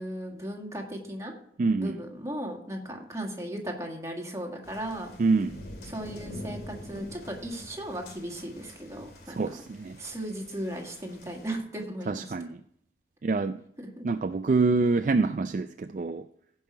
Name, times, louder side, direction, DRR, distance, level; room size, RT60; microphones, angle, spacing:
voice 1, 0.0-1.3 1.8-5.1 5.8-9.3 10.0-12.3 14.0-14.1, right 1 dB, 15° right, 1 dB, 1.8 m, -36 dB
voice 2, 1.6-2.0 5.2-5.6 9.3-10.0 12.1-12.6 13.2-13.6 14.0-16.3, right 3 dB, 45° right, 9 dB, 0.3 m, -26 dB
sound 1, 4.6-11.5, left 1 dB, 60° left, 2.5 m, -45 dB
16.0 x 5.6 x 4.7 m, 0.70 s
head